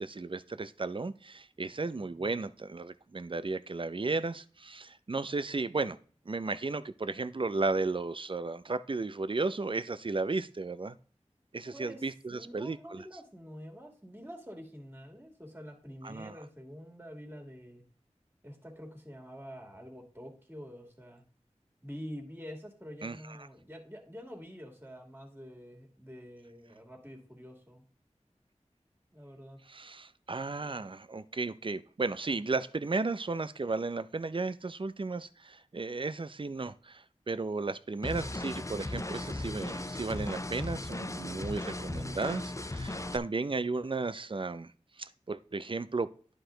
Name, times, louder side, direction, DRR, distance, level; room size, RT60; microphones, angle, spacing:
voice 1, 0.0-6.0 6.3-11.0 11.5-13.1 16.0-16.3 23.0-23.4 29.7-44.7 45.0-46.1, right 3 dB, 45° right, 0.5 m, -34 dB
voice 2, 1.8-2.3 11.7-17.8 18.4-21.2 21.8-27.8 29.1-29.6, equal, 15° right, 2.4 m, -47 dB
sound 1, 38.0-43.2, left 2 dB, 25° left, 0.6 m, -37 dB
11.0 x 4.8 x 3.8 m
wide cardioid pair, 40°, 12 cm